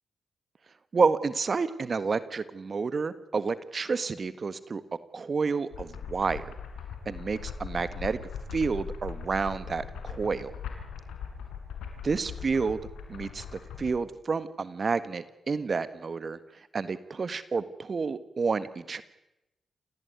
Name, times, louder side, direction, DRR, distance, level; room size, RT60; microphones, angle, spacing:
voice 1, 0.9-4.8 5.1-6.5 7.0-8.2 8.5-10.5 12.0-12.8 13.1-16.4 16.7-19.0, right 4 dB, 50° right, 14 dB, 1.6 m, -29 dB
sound 1, 5.7-14.0, left 6 dB, 85° left, 4.8 m, -40 dB
28.0 x 18.0 x 9.6 m, 0.93 s
supercardioid pair, 45°, 0 cm